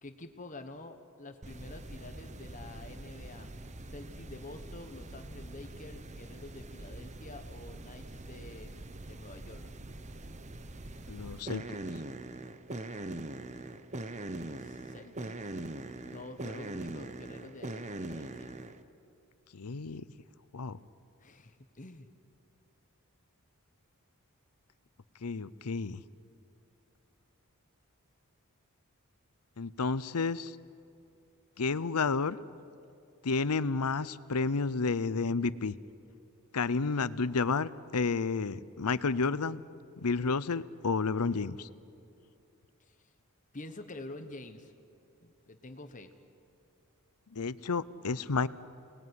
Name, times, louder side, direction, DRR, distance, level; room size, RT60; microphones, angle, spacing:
voice 1, 0.0-3.5 3.9-8.8 9.1-9.6 14.4-15.5 16.0-18.5 21.2-22.1 42.8-43.1 43.5-44.7 45.2-46.1, left 2 dB, 35° left, 7 dB, 1.2 m, -48 dB
sound 1, 1.4-18.8, right 2 dB, 30° right, 1.0 m, -42 dB
voice 2, 11.1-11.6 19.5-20.0 20.5-20.8 25.2-26.0 29.6-30.6 31.6-32.4 33.2-35.7 36.5-39.6 40.0-41.7 47.3-48.5, left 4 dB, 90° left, 17 dB, 0.8 m, -31 dB
29.5 x 20.0 x 9.7 m, 2.5 s
head